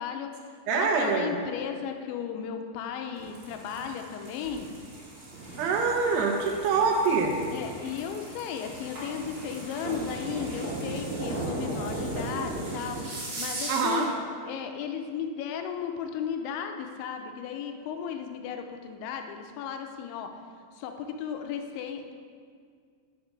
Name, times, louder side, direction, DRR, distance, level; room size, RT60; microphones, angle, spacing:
voice 1, 0.0-4.7 6.2-6.3 7.5-14.1 14.4-20.4 20.7-22.1, left 7 dB, 85° left, 5 dB, 3.0 m, -35 dB
voice 2, 0.7-1.3 5.6-7.4 13.7-14.1, right 4 dB, 75° right, 1 dB, 2.7 m, -25 dB
Brake Concrete Med Speed OS, 3.1-14.1, right 2 dB, 40° right, 2.3 m, -37 dB
11.5 x 6.6 x 4.7 m, 2.1 s
omnidirectional pair, 5.2 m